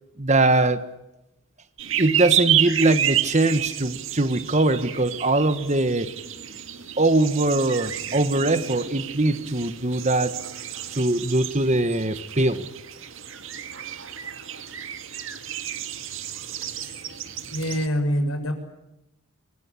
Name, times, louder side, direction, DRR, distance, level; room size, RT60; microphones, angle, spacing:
voice 1, 0.2-0.9 1.9-6.1 7.0-10.4 10.9-12.6, right 2 dB, 30° right, 11 dB, 1.5 m, -22 dB
sound 1, 1.8-17.9, right 10 dB, 65° right, 2.1 m, -30 dB
voice 2, 16.7-17.0 17.5-18.5, equal, 75° left, 7 dB, 7.1 m, -26 dB
27.5 x 23.0 x 8.5 m, 0.89 s
head